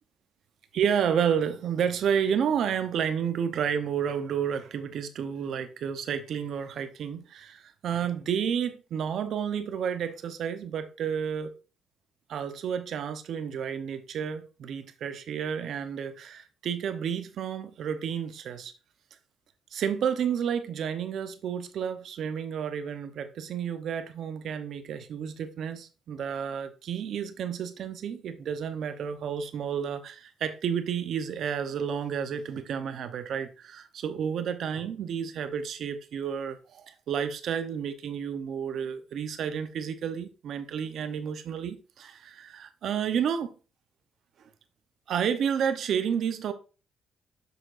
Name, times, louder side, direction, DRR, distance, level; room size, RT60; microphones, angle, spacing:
voice 1, 0.7-11.5 12.3-18.7 19.7-43.5 45.1-46.5, right 8 dB, 70° right, 0.8 m, -31 dB
6.9 x 6.3 x 2.6 m
cardioid pair, 90°, 0 cm